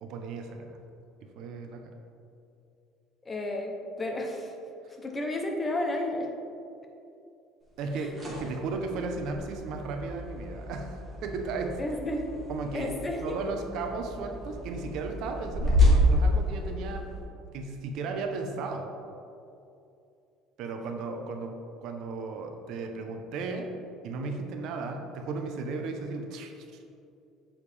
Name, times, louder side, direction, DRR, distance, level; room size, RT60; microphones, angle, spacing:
voice 1, 0.0-0.8 1.2-2.0 7.8-11.8 12.5-13.0 13.2-17.1 17.5-18.9 20.6-23.7 24.0-26.7, right 4 dB, 60° right, 4 dB, 0.6 m, -35 dB
voice 2, 3.2-4.5 5.0-6.3 8.0-8.1 11.8-12.3 12.7-13.4, left 1 dB, 15° left, 2 dB, 0.7 m, -32 dB
sound 1, 7.8-17.2, left 1 dB, 15° right, 1.5 m, -29 dB
7.0 x 5.0 x 3.3 m, 2.6 s
cardioid pair, 150°, 0 cm